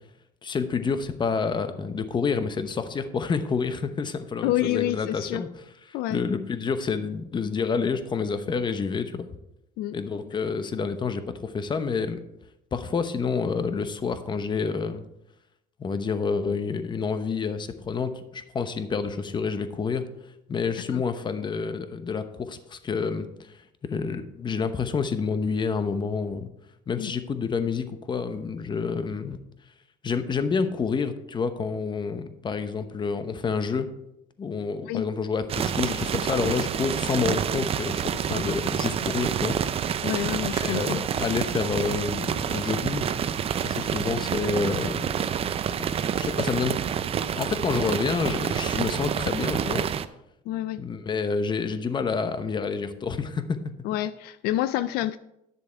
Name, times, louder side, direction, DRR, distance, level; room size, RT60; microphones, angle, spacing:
voice 1, 0.4-5.5 5.9-9.3 9.9-12.2 12.7-15.0 15.8-20.0 20.5-26.5 26.9-29.4 30.0-33.9 34.4-39.6 40.6-43.1 43.6-45.2 45.8-45.9 46.2-46.8 47.3-49.9 50.8-53.6, left 5 dB, 30° left, 10 dB, 0.9 m, -28 dB
voice 2, 4.4-5.4 5.9-6.2 9.8-10.0 20.9-21.0 27.0-27.1 34.8-35.1 40.0-41.0 50.5-50.8 53.8-55.2, left 14 dB, 75° left, 13 dB, 0.4 m, -28 dB
sound 1, 35.5-50.1, right 8 dB, 35° right, 0.5 m, -28 dB
10.5 x 6.8 x 4.5 m, 0.85 s
cardioid pair, 110°, 16 cm